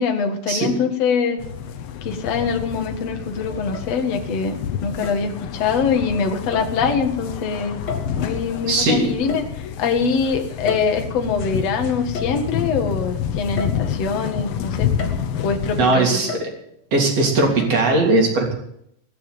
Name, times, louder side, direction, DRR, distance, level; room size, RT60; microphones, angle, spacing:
voice 1, 0.0-1.4 2.0-7.8 8.2-9.5 9.8-14.9 15.4-16.2, left 5 dB, 55° left, 4 dB, 2.6 m, -23 dB
sound 1, 1.3-1.4 2.4-3.0 3.7-4.4 5.0-5.4 6.5-6.8 7.9-8.4 9.3-10.0 10.7-11.5 12.1-12.8 13.6-14.3 15.0-15.5 16.3-16.9 17.6-17.7, left 5 dB, 40° left, 1.9 m, -34 dB
sound 2, 1.4-15.8, left 8 dB, 70° left, 1.3 m, -29 dB
voice 2, 8.7-9.1 15.8-16.5 16.9-18.5, right 2 dB, 50° right, 0 dB, 4.3 m, -18 dB
20.0 x 6.9 x 9.2 m, 0.75 s
omnidirectional pair, 3.9 m